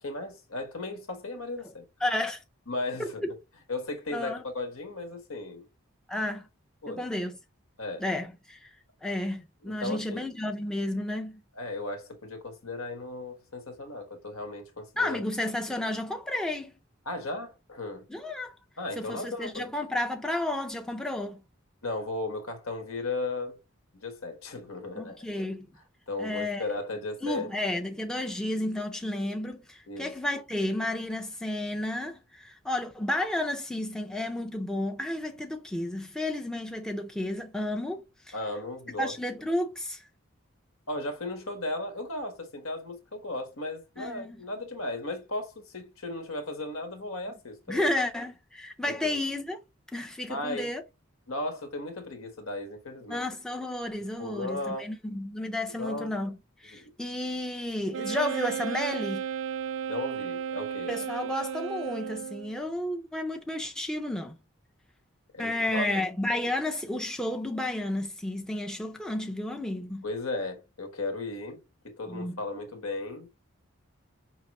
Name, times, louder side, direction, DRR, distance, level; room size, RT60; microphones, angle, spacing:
voice 1, 0.0-1.8 2.7-3.2 3.7-5.7 6.8-7.1 7.8-8.0 9.6-10.3 11.6-15.2 17.0-18.1 18.8-19.7 21.8-23.6 23.9-25.3 26.1-27.5 29.9-30.1 38.3-39.1 40.9-47.9 48.9-49.2 50.3-50.7 51.3-53.3 54.2-54.9 55.8-56.1 56.7-56.9 59.9-60.9 65.3-65.8 70.0-73.3, left 2 dB, 85° left, 1.4 m, -36 dB
voice 2, 2.0-2.4 3.0-3.3 4.1-4.4 6.1-6.5 6.9-7.4 8.0-8.8 9.0-11.4 15.0-16.8 18.1-18.6 19.0-21.4 25.0-25.7 26.2-26.6 27.2-38.4 39.0-40.1 44.0-44.4 47.7-49.6 49.9-50.8 53.1-59.2 60.9-64.4 65.4-70.0 72.1-72.4, left 1 dB, 5° left, 0.4 m, -32 dB
Wind instrument woodwind instrument, 57.9-62.6, right 8 dB, 65° right, 0.3 m, -34 dB
5.6 x 2.9 x 3.0 m
head